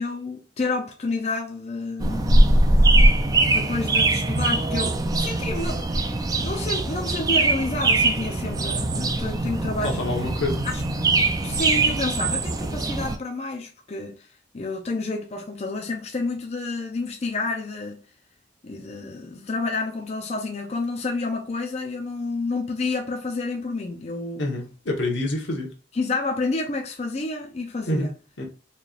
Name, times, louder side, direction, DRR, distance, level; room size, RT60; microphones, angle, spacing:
voice 1, 0.0-2.4 3.5-6.1 6.4-10.0 10.6-10.7 11.4-14.3 14.5-18.0 18.6-24.5 25.9-28.1, left 3 dB, 35° left, 0.5 m, -29 dB
sound 1, 2.0-13.2, right 2 dB, 20° right, 0.4 m, -21 dB
voice 2, 9.8-10.7 24.4-25.7 27.9-28.1 28.4-28.5, left 2 dB, 85° left, 1.2 m, -27 dB
4.1 x 3.2 x 2.4 m
head